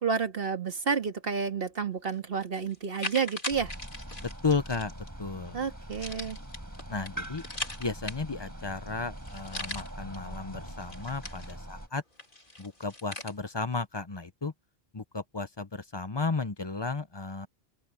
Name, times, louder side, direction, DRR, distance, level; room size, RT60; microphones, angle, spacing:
voice 1, 0.0-3.7 5.5-6.4, right 6 dB, 60° right, 2.0 m, -30 dB
sound 1, 2.1-2.2 2.7-5.1 5.9-8.5 8.9-9.0 9.2-10.2 10.6-11.8 12.2-13.3, left 1 dB, 50° left, 3.9 m, -40 dB
sound 2, 3.5-11.9, right 1 dB, 15° right, 4.3 m, -43 dB
voice 2, 4.2-5.6 6.9-7.4 7.8-12.0 12.6-14.5 14.9-17.5, left 4 dB, 25° left, 0.7 m, -33 dB
open air
omnidirectional pair, 1.1 m